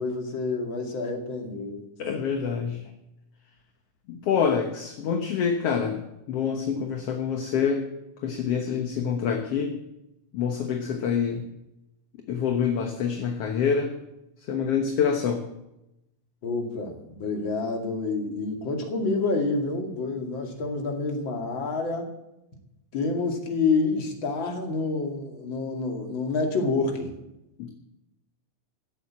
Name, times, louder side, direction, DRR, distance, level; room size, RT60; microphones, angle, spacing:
voice 1, 0.0-1.9 6.7-6.8 16.4-22.1 22.9-27.1, left 3 dB, 40° left, 3 dB, 2.7 m, -28 dB
voice 2, 2.0-2.8 4.1-6.0 6.3-7.8 8.2-9.7 10.3-11.4 12.3-13.9 14.5-15.4 27.6-27.7, left 7 dB, 60° left, 4 dB, 2.0 m, -26 dB
15.5 x 8.0 x 8.5 m, 0.90 s
omnidirectional pair, 3.7 m